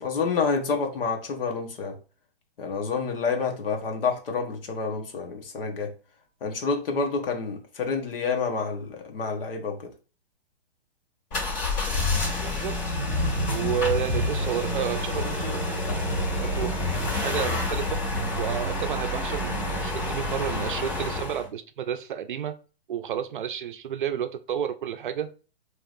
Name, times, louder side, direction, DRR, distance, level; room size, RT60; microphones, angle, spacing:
voice 1, 0.0-1.9 2.6-5.9 6.4-9.9, left 4 dB, 65° left, 1.1 m, -28 dB
sound 1, 11.3-21.5, left 1 dB, 45° left, 1.9 m, -28 dB
voice 2, 12.4-12.7 13.5-16.1 16.4-16.8 17.1-18.0 18.4-22.6 22.9-25.3, right 9 dB, 55° right, 0.5 m, -31 dB
4.6 x 3.0 x 2.5 m
hypercardioid pair, 170°, 31 cm